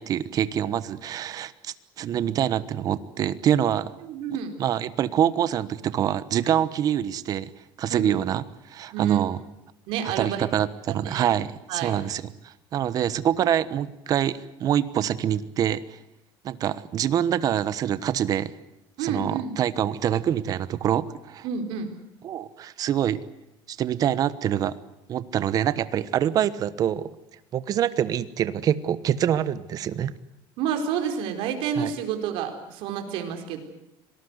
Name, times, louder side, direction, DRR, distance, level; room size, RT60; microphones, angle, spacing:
voice 1, 0.0-3.9 4.6-7.5 7.8-9.4 10.0-16.0 16.4-18.5 19.0-21.5 22.2-23.2 23.7-24.8 25.1-27.1 27.5-30.1 31.8-31.9, right 10 dB, 40° right, 15 dB, 1.1 m, -25 dB
voice 2, 4.0-4.5 7.9-8.0 8.9-9.3 9.9-10.5 11.0-11.3 11.7-11.9 19.0-19.6 21.4-21.9 30.6-33.6, right 7 dB, 65° right, 5 dB, 4.3 m, -29 dB
25.5 x 19.0 x 8.1 m, 0.87 s
cardioid pair, 150°, 10 cm